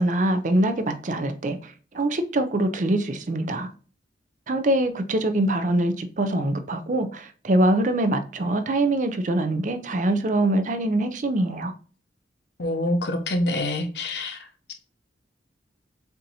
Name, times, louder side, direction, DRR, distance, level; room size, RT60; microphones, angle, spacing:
voice 1, 0.0-3.7 4.5-11.7, right 1 dB, 45° right, 0.5 m, -24 dB
voice 2, 12.6-14.4, left 1 dB, 65° left, 0.7 m, -26 dB
6.8 x 2.7 x 2.8 m
head